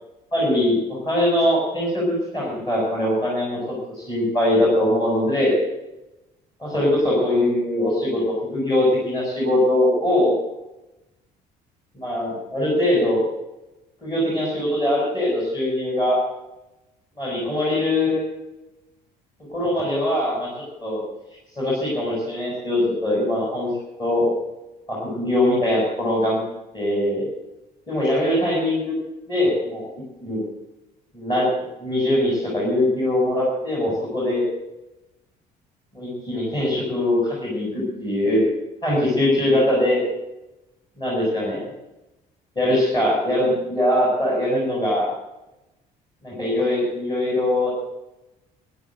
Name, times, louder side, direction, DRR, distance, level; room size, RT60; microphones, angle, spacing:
voice 1, 0.3-5.6 6.7-10.3 12.0-13.2 14.0-16.2 17.2-18.2 19.5-20.5 20.8-21.0 21.6-23.7 24.0-24.3 24.9-26.4 26.7-27.2 27.9-28.9 29.3-29.9 30.2-30.4 31.1-31.5 31.8-34.4 35.9-38.5 38.8-40.0 41.0-41.7 42.6-45.1 46.2-47.7, left 1 dB, 25° left, -5 dB, 7.4 m, -22 dB
12.5 x 12.5 x 7.9 m, 0.96 s
cardioid pair, 110°, 17 cm